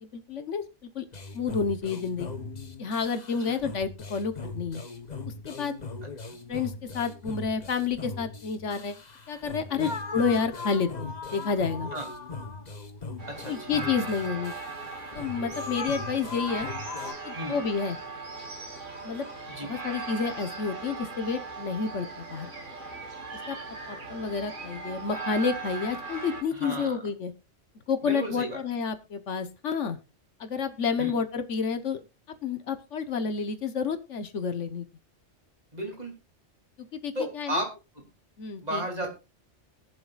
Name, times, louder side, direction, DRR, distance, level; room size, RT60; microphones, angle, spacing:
voice 1, 0.0-0.6 0.9-1.0 1.3-2.3 2.8-4.8 5.4-5.7 6.5-9.0 9.3-11.9 13.5-14.5 15.1-16.7 17.2-18.0 19.0-19.3 19.6-22.5 23.5-23.6 23.9-27.3 27.9-30.0 30.4-32.0 32.4-34.9 36.9-37.6 38.4-38.8, left 5 dB, 80° left, 10 dB, 1.4 m, -30 dB
sound 1, 1.1-17.1, left 3 dB, 40° left, 1.1 m, -39 dB
sound 2, 13.2-26.4, right 3 dB, 90° right, 2.9 m, -39 dB
voice 2, 13.3-13.8 17.3-17.6 19.5-19.7 26.5-27.0 28.0-28.6 31.0-31.2 35.7-36.1 37.1-38.1 38.6-39.1, right 1 dB, 35° right, 2 dB, 3.0 m, -34 dB
21.5 x 7.3 x 2.4 m, 0.29 s
omnidirectional pair, 1.2 m